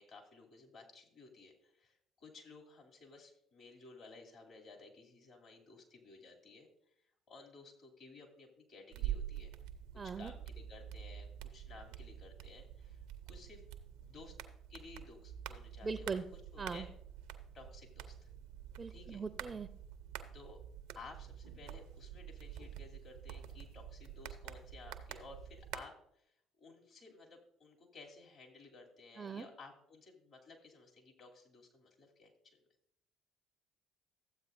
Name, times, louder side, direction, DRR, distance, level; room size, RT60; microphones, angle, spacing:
voice 1, 0.0-6.7 7.3-9.6 10.0-13.0 13.3-13.6 14.0-14.4 14.7-16.9 17.5-18.1 18.9-19.2 20.3-20.6 20.9-32.6, left 3 dB, 55° left, -1 dB, 2.6 m, -56 dB
sound 1, 8.9-25.8, right 10 dB, 75° right, 0.6 m, -47 dB
voice 2, 10.0-10.3 15.8-16.2 16.6-16.8 18.8-19.7 29.2-29.5, right 5 dB, 35° right, 10 dB, 0.5 m, -40 dB
13.0 x 8.2 x 2.6 m, 0.72 s
hypercardioid pair, 55°, 0 cm